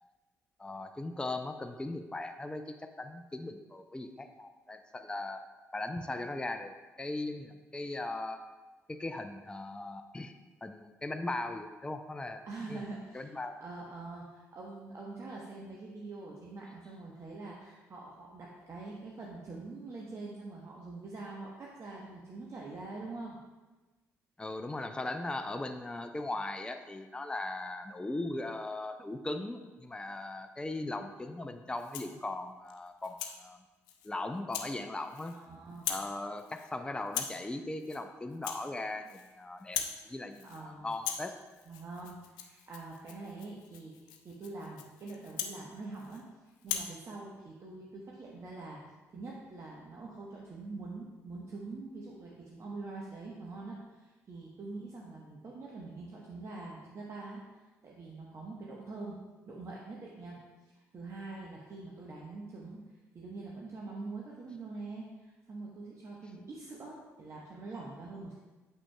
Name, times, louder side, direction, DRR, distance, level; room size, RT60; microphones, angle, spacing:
voice 1, 0.6-5.4 5.7-8.4 8.9-10.3 10.6-12.4 12.7-12.8 13.1-13.5 24.4-33.6 34.0-35.3 35.9-39.8 40.1-40.5 40.8-41.3, left 2 dB, 10° left, 7 dB, 0.5 m, -38 dB
voice 2, 12.4-13.3 13.6-23.4 35.3-35.8 40.4-40.9 41.6-46.3 46.6-48.8 49.1-57.4 57.8-59.2 59.4-60.4 60.7-62.8 63.1-68.3, right 3 dB, 40° right, -3 dB, 1.1 m, -44 dB
Rattle (instrument), 31.7-32.2 32.7-33.4 33.9-34.1 34.5-34.7 35.0-35.5 35.7-36.1 36.4-36.7 37.1-37.4 37.8-38.0 38.3-39.3 39.6-40.0 40.3-40.6 40.9-46.2 46.6-46.9, left 9 dB, 70° left, 0.5 m, -40 dB
8.6 x 6.5 x 2.3 m, 1.2 s
figure-of-eight pair, 45°, 8 cm